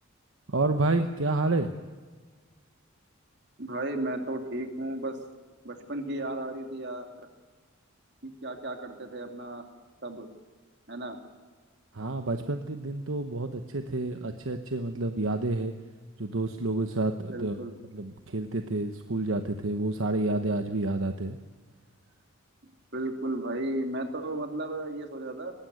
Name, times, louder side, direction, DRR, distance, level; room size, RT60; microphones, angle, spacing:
voice 1, 0.5-1.7 11.9-15.7 16.2-17.6 17.9-21.4, right 2 dB, 75° right, 7 dB, 1.1 m, -29 dB
voice 2, 3.6-5.2 5.6-7.3 8.2-9.6 10.0-10.3 10.9-11.2 17.3-17.7 22.6-25.5, right 1 dB, 55° right, 5 dB, 2.6 m, -34 dB
19.5 x 16.0 x 9.4 m, 1.4 s
head